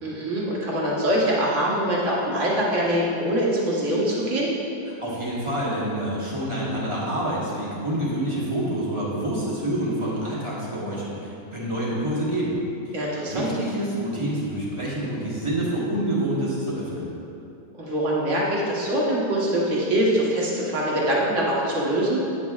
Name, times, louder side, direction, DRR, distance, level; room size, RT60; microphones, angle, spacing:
voice 1, 0.0-4.5 12.9-13.5 17.7-22.2, right 1 dB, 45° right, -5 dB, 1.5 m, -23 dB
voice 2, 5.0-12.5 12.9-13.0 13.3-17.1, right 1 dB, 20° right, -7 dB, 1.3 m, -27 dB
9.0 x 7.3 x 2.4 m, 2.8 s
omnidirectional pair, 1.9 m